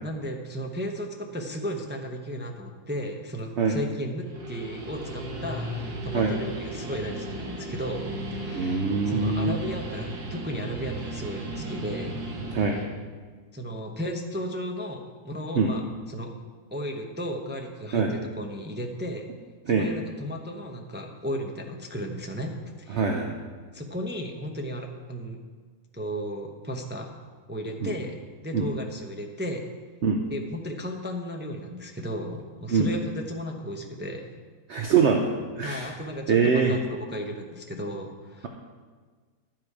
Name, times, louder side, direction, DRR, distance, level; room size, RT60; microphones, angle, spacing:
voice 1, 0.0-12.2 13.5-15.8 16.1-16.3 16.7-19.2 19.7-23.0 23.7-25.4 25.9-27.1 27.5-28.1 28.4-29.7 30.3-34.3 35.6-36.8 37.1-38.5, equal, 10° right, 2 dB, 0.5 m, -34 dB
Guitar, 4.2-12.9, right 1 dB, 90° right, 1.9 m, -36 dB
voice 2, 8.5-9.6 12.5-12.8 15.6-15.7 17.9-18.1 19.7-19.9 22.9-23.3 27.8-27.9 28.5-28.7 30.0-30.2 32.7-32.9 34.7-35.9 36.3-36.7, right 5 dB, 55° right, 2 dB, 0.9 m, -23 dB
11.5 x 7.6 x 4.9 m, 1.5 s
omnidirectional pair, 1.6 m